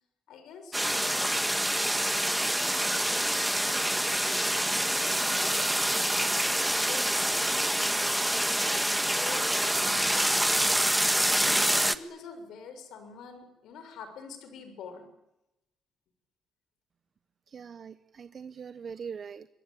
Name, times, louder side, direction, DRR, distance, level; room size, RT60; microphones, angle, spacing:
voice 1, 0.3-15.1, left 5 dB, 80° left, 6.6 m, -47 dB
sound 1, 0.7-12.0, right 1 dB, 5° right, 1.7 m, -26 dB
voice 2, 17.5-19.5, right 6 dB, 50° right, 1.1 m, -42 dB
28.0 x 22.5 x 9.2 m
cardioid pair, 90°, 0 cm